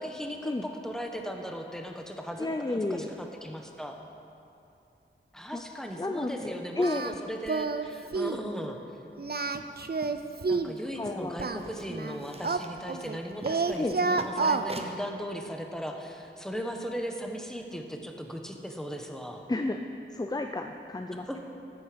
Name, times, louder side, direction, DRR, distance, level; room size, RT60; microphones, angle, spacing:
voice 1, 0.0-4.0 5.3-8.8 10.5-19.4 21.1-21.4, equal, ahead, 3 dB, 1.2 m, -38 dB
voice 2, 2.4-3.1 5.5-5.6 6.0-7.0 11.0-11.4 13.8-14.0 19.5-19.8 20.1-21.4, left 2 dB, 20° left, 5 dB, 0.5 m, -31 dB
Singing, 6.8-7.1 7.5-7.9 8.1-8.4 9.2-10.8 11.4-13.2 13.4-14.7, right 4 dB, 50° right, 0.5 m, -29 dB
sound 1, 9.5-15.0, right 1 dB, 30° right, 0.9 m, -45 dB
13.5 x 8.3 x 5.2 m, 2.7 s
wide cardioid pair, 50°, 21 cm